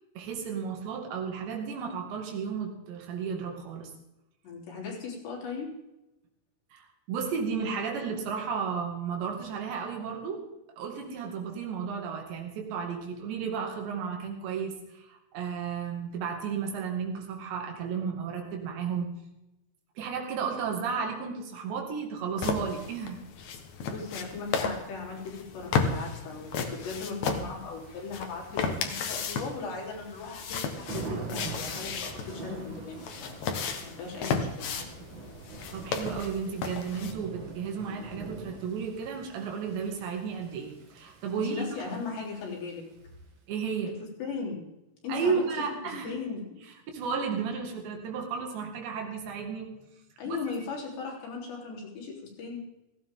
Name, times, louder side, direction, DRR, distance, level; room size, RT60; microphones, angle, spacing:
voice 1, 0.2-3.9 6.7-19.1 20.0-23.2 35.7-41.7 43.5-44.0 45.1-46.2 46.6-49.7 50.3-50.4, right 6 dB, 85° right, 2 dB, 4.5 m, -33 dB
voice 2, 4.4-5.7 23.9-33.4 34.0-34.7 41.3-42.8 44.2-44.6 45.0-46.4 50.2-52.6, left 4 dB, 80° left, -3 dB, 5.9 m, -38 dB
sound 1, 22.4-37.1, left 5 dB, 65° left, 1.9 m, -34 dB
Thunder / Rain, 26.5-43.1, right 3 dB, 45° right, 1.7 m, -44 dB
16.5 x 16.0 x 3.7 m, 0.93 s
omnidirectional pair, 4.9 m